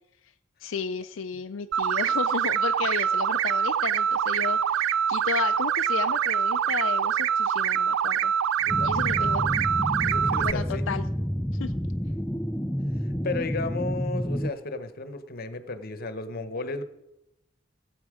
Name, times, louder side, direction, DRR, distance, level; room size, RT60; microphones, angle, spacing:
voice 1, 0.6-8.3 8.8-9.5 10.4-11.0 11.6-11.7, left 6 dB, 80° left, 7 dB, 0.4 m, -33 dB
sound 1, 1.7-10.5, right 8 dB, 90° right, 0.3 m, -25 dB
voice 2, 8.6-9.6 10.0-10.8 13.2-16.8, left 3 dB, 50° left, 10 dB, 0.9 m, -34 dB
sound 2, 8.7-14.5, equal, 5° left, 0.3 m, -29 dB
16.0 x 8.0 x 4.9 m, 0.90 s
head